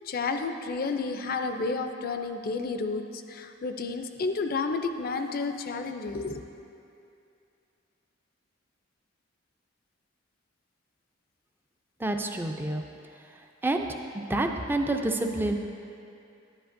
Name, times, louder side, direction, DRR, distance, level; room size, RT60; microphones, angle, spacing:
voice 1, 0.0-6.4, left 4 dB, 45° left, 7 dB, 0.5 m, -31 dB
voice 2, 12.0-12.8 13.6-13.8 14.3-15.6, right 2 dB, 10° right, 4 dB, 0.4 m, -27 dB
10.5 x 10.5 x 2.6 m, 2.6 s
head